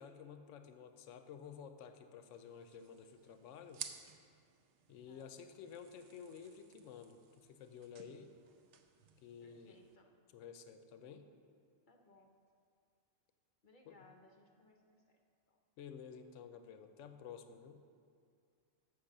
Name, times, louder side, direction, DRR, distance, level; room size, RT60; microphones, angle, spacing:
voice 1, 0.0-3.8 4.9-8.3 9.2-9.8 10.3-11.3 13.9-14.1 15.8-17.8, left 7 dB, 70° left, 8 dB, 0.9 m, -52 dB
sound 1, 2.3-10.0, right 7 dB, 65° right, 0.9 m, -55 dB
voice 2, 5.1-5.8 9.4-10.1 11.9-12.3 13.6-15.2 15.5-15.6, left 2 dB, 50° left, 3 dB, 0.7 m, -65 dB
7.2 x 6.3 x 6.6 m, 2.3 s
omnidirectional pair, 1.4 m